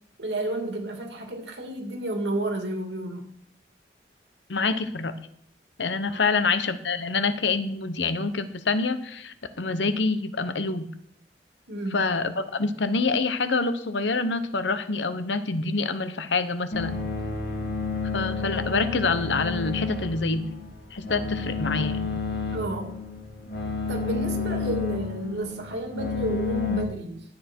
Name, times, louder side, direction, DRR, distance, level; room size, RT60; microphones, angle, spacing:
voice 1, 0.2-3.3 6.1-6.2 11.7-12.1 22.5-22.9 23.9-27.2, right 2 dB, 80° right, 3 dB, 2.5 m, -31 dB
voice 2, 4.5-5.3 5.8-10.8 11.9-17.0 18.1-20.4 20.9-22.1, left 4 dB, 90° left, 11 dB, 1.0 m, -26 dB
sound 1, 16.7-26.8, left 4 dB, 60° left, 1.8 m, -31 dB
12.5 x 8.9 x 4.6 m, 0.67 s
head